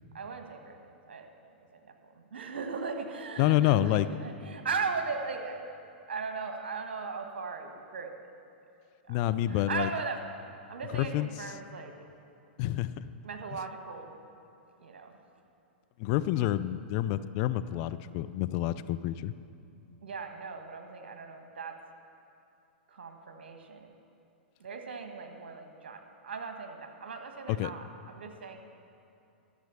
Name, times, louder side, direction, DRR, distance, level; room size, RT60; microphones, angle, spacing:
voice 1, 0.1-1.3 1.7-1.8 2.1-5.8 6.1-8.1 9.1-10.2 10.7-11.9 13.2-14.2 14.8-15.2 20.0-21.7 22.9-23.9 24.6-28.6, right 4 dB, 75° right, 5 dB, 1.4 m, -38 dB
voice 2, 3.4-4.1 9.1-9.9 10.9-11.3 12.6-13.1 13.5-13.6 16.0-19.3 27.5-27.7, left 14 dB, 45° left, 14 dB, 0.4 m, -28 dB
12.0 x 7.4 x 6.9 m, 2.7 s
hypercardioid pair, 110°, 6 cm